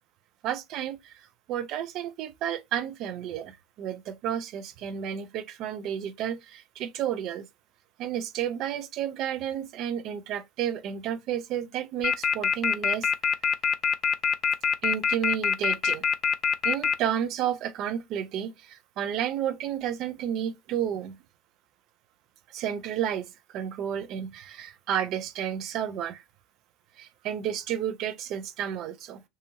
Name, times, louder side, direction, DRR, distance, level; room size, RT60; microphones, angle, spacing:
voice 1, 0.4-1.2 1.5-7.5 8.0-13.1 14.8-16.0 16.6-21.2 22.5-26.2 27.0-29.2, right 10 dB, 50° right, 0.4 m, -31 dB
sound 1, 12.0-16.9, left 7 dB, 30° left, 0.4 m, -23 dB
2.7 x 2.5 x 2.4 m
figure-of-eight pair, 70°, 0 cm